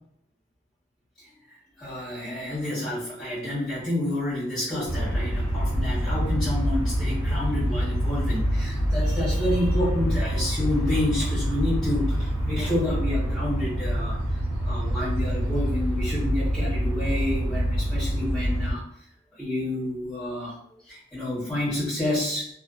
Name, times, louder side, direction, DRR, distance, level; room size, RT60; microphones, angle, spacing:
voice 1, 1.8-18.8 19.4-20.6 20.8-22.5, left 1 dB, 5° left, -13 dB, 1.3 m, -29 dB
sound 1, 4.9-18.7, equal, 45° right, 1.4 m, -26 dB
2.6 x 2.4 x 2.3 m, 0.72 s
head